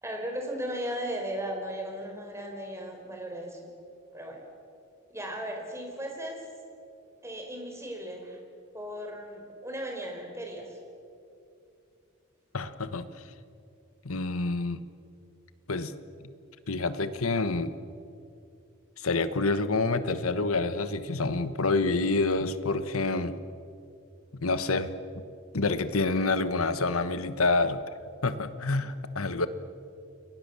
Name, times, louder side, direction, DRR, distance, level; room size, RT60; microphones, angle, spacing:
voice 1, 0.0-3.7 4.1-4.4 5.1-6.4 7.2-8.4 8.7-10.8, equal, 15° right, 2 dB, 4.5 m, -36 dB
voice 2, 12.5-13.1 14.0-14.8 15.7-15.9 16.2-16.3 16.7-17.7 19.0-23.3 24.3-24.9 25.5-27.8 28.2-29.5, left 3 dB, 80° left, 12 dB, 1.3 m, -27 dB
30.0 x 22.0 x 7.1 m, 2.5 s
head